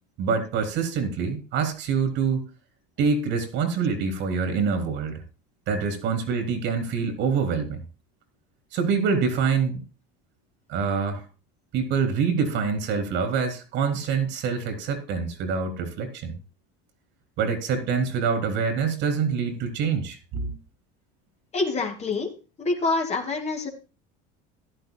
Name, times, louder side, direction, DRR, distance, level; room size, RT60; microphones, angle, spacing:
voice 1, 0.2-2.5 3.0-5.2 5.7-7.8 8.7-9.8 10.7-11.2 11.7-16.4 17.4-20.6, right 5 dB, 60° right, 3.5 m, -25 dB
voice 2, 21.5-22.3 22.6-23.7, left 3 dB, 30° left, 2.5 m, -26 dB
14.5 x 11.0 x 2.3 m
supercardioid pair, 105°, 21 cm